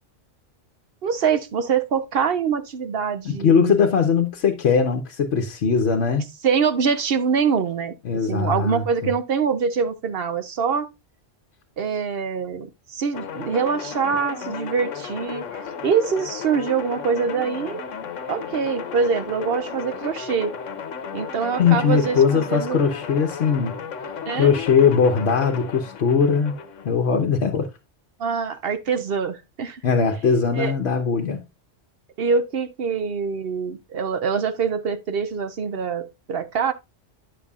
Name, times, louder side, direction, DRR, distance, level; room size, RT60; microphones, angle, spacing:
voice 1, 1.0-3.7 6.4-7.9 8.3-10.9 11.8-17.8 18.3-20.5 21.1-22.8 24.3-24.5 28.2-29.8 30.5-30.7 32.2-36.7, right 6 dB, 60° right, 0.8 m, -24 dB
voice 2, 3.2-6.3 8.0-9.1 21.6-23.8 24.3-26.6 26.8-27.7 29.8-31.4, left 6 dB, 65° left, 1.1 m, -20 dB
sound 1, 13.1-26.9, left 7 dB, 85° left, 1.2 m, -34 dB
9.6 x 6.9 x 2.4 m
omnidirectional pair, 1.3 m